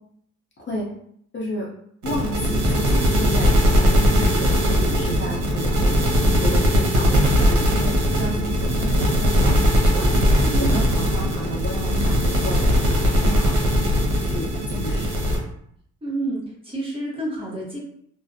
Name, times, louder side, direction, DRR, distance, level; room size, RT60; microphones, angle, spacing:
voice 1, 1.3-1.7 2.0-12.7 13.0-13.7 14.2-15.4, left 1 dB, 40° left, -2 dB, 0.7 m, -32 dB
sound 1, 2.0-15.4, equal, 75° right, 0.8 m, -19 dB
voice 2, 10.4-10.9 16.0-17.8, right 2 dB, 20° right, -4 dB, 0.9 m, -29 dB
2.4 x 2.1 x 2.6 m, 0.68 s
cardioid pair, 90°, 30 cm